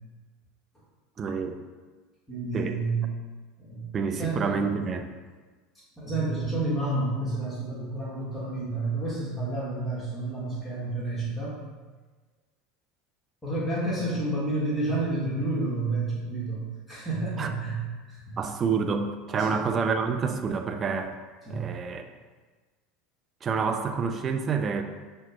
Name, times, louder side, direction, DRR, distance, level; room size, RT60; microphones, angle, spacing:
voice 1, 1.2-1.6 2.5-2.8 3.9-5.1 17.4-17.5 18.4-21.2 21.5-22.0 23.4-24.8, right 5 dB, 35° right, 6 dB, 0.4 m, -28 dB
voice 2, 2.3-3.1 3.6-3.9 4.2-4.7 6.0-11.6 13.4-17.8 18.1-18.4 19.3-19.6 21.4-21.6, right 2 dB, 15° left, -8 dB, 1.5 m, -30 dB
5.8 x 2.2 x 2.9 m, 1.3 s
hypercardioid pair, 80°, 0 cm